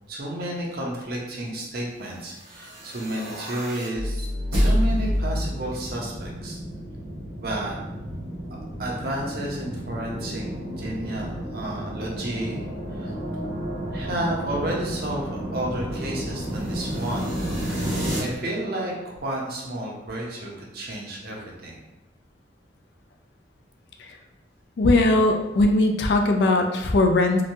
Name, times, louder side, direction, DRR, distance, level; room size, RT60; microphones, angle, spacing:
voice 1, 0.1-6.6 7.4-7.8 8.5-10.4 10.8-12.6 12.9-13.1 13.9-17.4 18.2-21.8, right 1 dB, 55° right, -2 dB, 0.6 m, -31 dB
sound 1, 2.4-18.2, equal, 75° right, 1.2 m, -30 dB
voice 2, 24.8-27.4, left 2 dB, 65° left, 4 dB, 0.3 m, -19 dB
2.9 x 2.2 x 2.6 m, 0.97 s
head